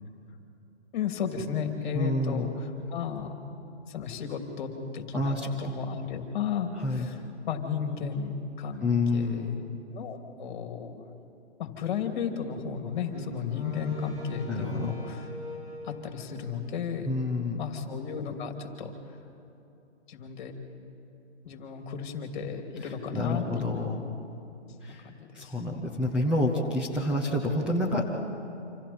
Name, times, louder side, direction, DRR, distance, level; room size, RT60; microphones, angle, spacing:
voice 1, 0.9-2.5 2.9-3.3 3.9-6.7 7.5-9.6 9.9-11.0 11.6-15.2 15.9-17.1 17.6-18.9 20.1-20.5 21.4-23.9 24.9-25.5, left 7 dB, 45° left, 4 dB, 2.8 m, -33 dB
voice 2, 1.9-2.5 5.1-5.5 6.8-7.1 8.8-9.5 14.5-14.9 17.0-17.6 22.8-24.0 24.8-25.0 25.3-28.1, left 2 dB, 5° right, -3 dB, 0.9 m, -28 dB
Wind instrument woodwind instrument, 13.1-17.3, left 1 dB, 25° right, 4.6 m, -44 dB
28.5 x 27.0 x 4.4 m, 2.8 s
hypercardioid pair, 150°, 35 cm